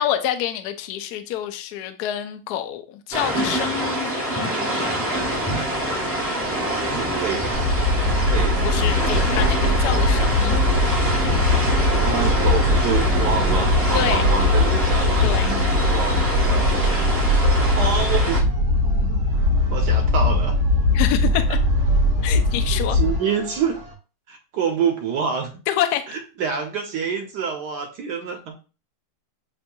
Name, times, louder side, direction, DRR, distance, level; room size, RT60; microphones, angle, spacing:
voice 1, 0.0-4.4 8.5-10.6 13.9-14.3 15.2-15.5 20.9-21.6 22.2-23.0 25.7-26.0, left 11 dB, 80° left, 0.9 m, -27 dB
sound 1, 3.1-18.4, right 1 dB, 15° right, 0.5 m, -25 dB
sound 2, 5.2-24.0, right 4 dB, 30° right, 1.0 m, -40 dB
voice 2, 6.5-7.7 8.3-8.6 11.9-16.7 17.4-18.4 19.7-20.5 22.7-23.8 24.3-25.5 26.1-28.5, right 6 dB, 65° right, 1.1 m, -27 dB
sound 3, 7.5-23.2, left 2 dB, 50° left, 0.9 m, -20 dB
7.6 x 2.7 x 2.3 m
omnidirectional pair, 2.3 m